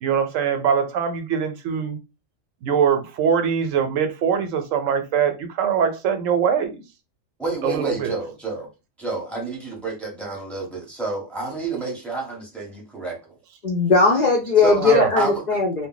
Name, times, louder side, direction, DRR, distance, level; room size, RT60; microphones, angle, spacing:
voice 1, 0.0-2.0 2.6-6.8 7.6-8.1 14.9-15.1, right 7 dB, 80° right, 1.0 m, -22 dB
voice 2, 7.4-8.7 9.0-13.2 14.6-15.4, right 3 dB, ahead, 0.8 m, -28 dB
voice 3, 13.6-15.9, left 4 dB, 55° left, 0.5 m, -18 dB
2.4 x 2.1 x 3.8 m
omnidirectional pair, 1.3 m